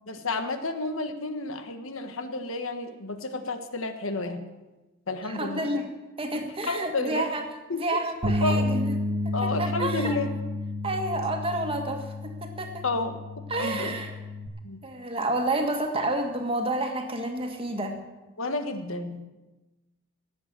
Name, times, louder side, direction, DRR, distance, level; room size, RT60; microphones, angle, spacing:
voice 1, 0.1-4.4 5.1-5.7 6.6-7.3 7.7-7.8 8.4-8.7 9.3-10.3 12.8-14.0 14.6-14.8 18.4-19.2, left 2 dB, 75° left, 8 dB, 1.4 m, -31 dB
voice 2, 5.2-5.9 6.2-7.4 7.8-8.9 9.2-10.2 10.8-12.8 13.5-14.1 14.8-18.0, right 1 dB, 25° right, 4 dB, 1.7 m, -29 dB
sound 1, 8.2-14.5, left 2 dB, 60° right, 1.3 m, -31 dB
18.0 x 7.7 x 7.5 m, 1.1 s
head